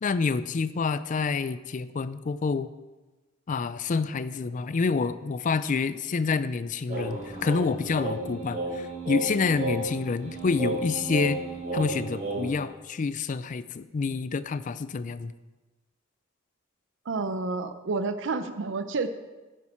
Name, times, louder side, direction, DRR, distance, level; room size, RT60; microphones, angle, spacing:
voice 1, 0.0-2.7 3.5-11.4 11.7-15.3, left 4 dB, 40° left, 14 dB, 0.4 m, -28 dB
sound 1, 6.9-12.6, right 2 dB, 35° right, 3.8 m, -33 dB
voice 2, 17.1-19.1, right 3 dB, 65° right, 10 dB, 0.5 m, -29 dB
10.5 x 8.2 x 4.4 m, 1.2 s
head